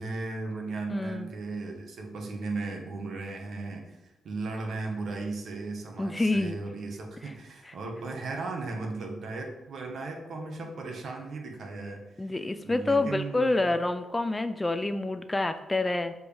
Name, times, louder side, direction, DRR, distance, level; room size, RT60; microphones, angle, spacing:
voice 1, 0.0-12.3 12.6-13.7, right 3 dB, 60° right, 2 dB, 1.4 m, -36 dB
voice 2, 0.9-1.3 6.0-6.6 7.7-7.8 12.2-16.1, left 2 dB, 15° left, 10 dB, 0.4 m, -27 dB
7.5 x 4.7 x 3.4 m, 1.0 s
cardioid pair, 120°, 0 cm